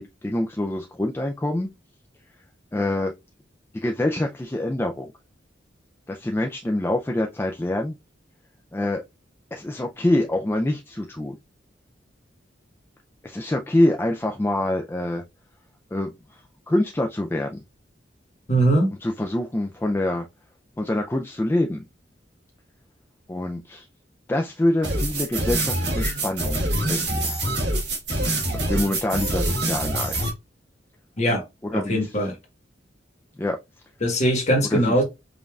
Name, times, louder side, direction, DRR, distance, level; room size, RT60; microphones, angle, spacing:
voice 1, 0.0-1.7 2.7-3.1 3.7-5.1 6.1-7.9 8.7-9.0 9.5-11.4 13.2-15.2 15.9-17.6 19.0-20.3 20.8-21.8 23.3-23.9 24.3-27.3 28.5-30.1 31.6-32.1 33.4-33.6 34.7-35.0, left 1 dB, 10° left, 0.3 m, -25 dB
voice 2, 18.5-18.9 31.2-31.4 31.7-32.4 34.0-35.0, right 1 dB, 40° left, 1.2 m, -21 dB
sound 1, 24.8-30.3, right 1 dB, 60° right, 1.4 m, -25 dB
5.1 x 2.5 x 2.3 m
head